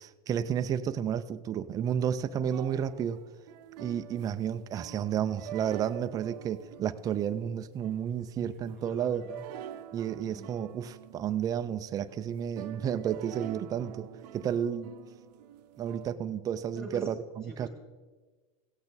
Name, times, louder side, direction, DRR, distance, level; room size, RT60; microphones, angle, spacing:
voice 1, 0.0-3.2 3.8-9.2 9.9-14.1 14.3-14.9 15.8-17.1 17.6-17.7, right 9 dB, 20° right, 10 dB, 0.3 m, -31 dB
sound 1, 2.4-16.2, right 11 dB, 85° right, 0.7 m, -47 dB
voice 2, 8.4-9.4 10.1-10.5 16.7-17.7, right 1 dB, ahead, -2 dB, 2.0 m, -45 dB
16.5 x 8.5 x 4.0 m, 1.3 s
supercardioid pair, 150°, 20 cm